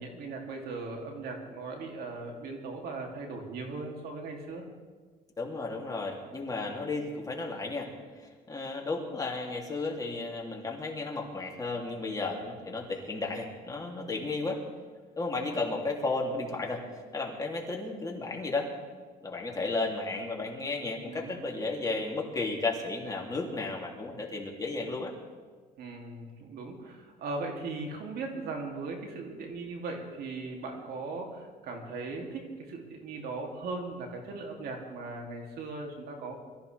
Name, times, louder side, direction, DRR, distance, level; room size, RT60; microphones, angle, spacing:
voice 1, 0.0-4.6 21.0-21.4 25.8-36.4, right 3 dB, 70° right, 1 dB, 2.7 m, -38 dB
voice 2, 5.4-7.9 8.2-14.6 15.2-16.8 17.1-18.7 19.2-25.1, left 3 dB, 20° left, -1 dB, 2.7 m, -33 dB
23.0 x 14.0 x 3.4 m, 1.5 s
cardioid pair, 110°, 17 cm